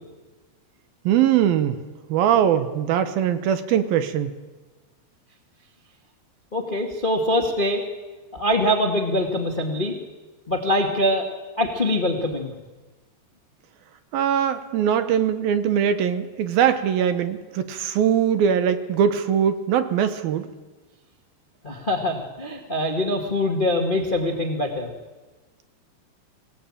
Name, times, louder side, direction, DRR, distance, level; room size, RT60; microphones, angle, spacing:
voice 1, 1.1-1.8 2.1-4.3 14.1-20.5, right 9 dB, 70° right, 10 dB, 2.6 m, -21 dB
voice 2, 6.5-7.8 8.3-10.0 10.5-11.3 11.6-12.5 21.6-24.9, left 1 dB, 70° left, 3 dB, 0.4 m, -23 dB
25.5 x 17.5 x 8.9 m, 1.3 s
omnidirectional pair, 4.9 m